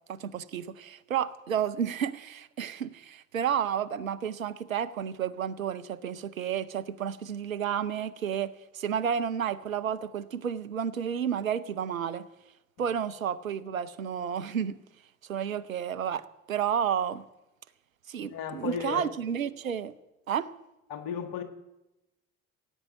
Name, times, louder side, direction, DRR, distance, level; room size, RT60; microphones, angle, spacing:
voice 1, 0.1-12.3 12.8-14.8 15.3-17.3 18.1-19.9 20.3-20.5, right 8 dB, 85° right, 12 dB, 0.6 m, -31 dB
voice 2, 18.2-19.1 20.9-21.4, left 7 dB, 55° left, 10 dB, 1.7 m, -34 dB
15.5 x 8.9 x 8.0 m, 0.95 s
figure-of-eight pair, 50°, 40 cm